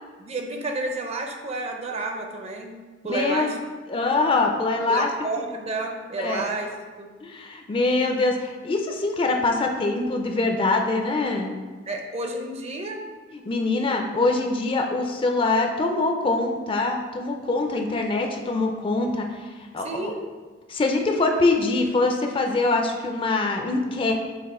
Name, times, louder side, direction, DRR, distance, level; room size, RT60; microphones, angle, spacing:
voice 1, 0.2-2.8 3.0-3.6 4.9-6.7 7.0-7.1 11.9-13.1 19.8-20.2, right 2 dB, 35° right, 3 dB, 0.5 m, -30 dB
voice 2, 3.1-3.5 3.9-5.1 6.2-6.4 7.2-11.5 13.3-19.4 19.7-20.1 20.7-24.2, left 3 dB, 30° left, 3 dB, 0.4 m, -24 dB
5.9 x 2.5 x 3.6 m, 1.3 s
head